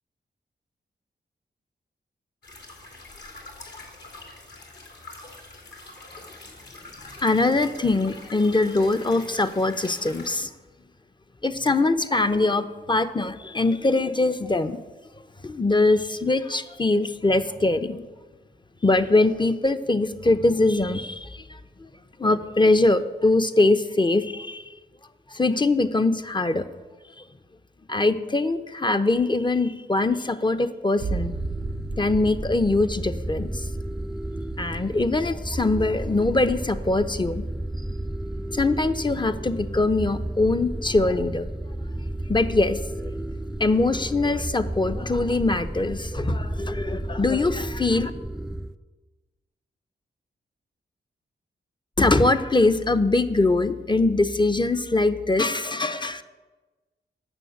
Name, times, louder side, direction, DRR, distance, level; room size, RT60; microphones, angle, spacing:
sound 1, 2.4-10.4, left 2 dB, 60° left, 2.8 m, -44 dB
voice 1, 7.2-10.5 11.4-14.8 15.4-18.0 18.8-21.4 22.2-24.6 25.3-26.7 27.9-31.4 31.9-33.5 34.6-37.4 38.5-41.4 42.3-43.1 43.6-48.1 52.0-56.2, left 2 dB, 25° left, 10 dB, 0.9 m, -22 dB
sound 2, 31.0-48.7, right 1 dB, 5° right, 0.5 m, -32 dB
sound 3, 31.0-36.4 36.9-37.5, right 6 dB, 70° right, 0.5 m, -38 dB
9.1 x 6.3 x 8.1 m, 1.2 s
cardioid pair, 45°, 19 cm